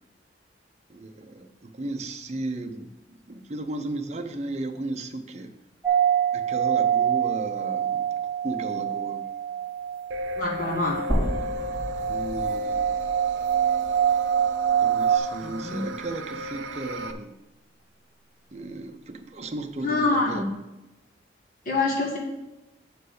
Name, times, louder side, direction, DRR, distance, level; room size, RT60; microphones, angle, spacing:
voice 1, 0.9-2.9 3.3-5.5 6.3-8.1 8.4-9.3 12.1-13.0 14.8-17.3 18.5-20.5, right 2 dB, 35° right, 6 dB, 0.6 m, -35 dB
sound 1, 5.8-15.2, right 9 dB, 5° right, 1.1 m, -25 dB
sound 2, 10.1-17.1, left 2 dB, 90° right, 0.7 m, -35 dB
voice 2, 10.4-11.0 15.4-15.9 19.8-20.5 21.6-22.2, left 3 dB, 45° left, -2 dB, 1.6 m, -25 dB
sound 3, 11.1-15.2 15.6-15.7 17.1-17.2, right 1 dB, 30° left, 3.3 m, -33 dB
7.4 x 4.6 x 6.6 m, 1.0 s
head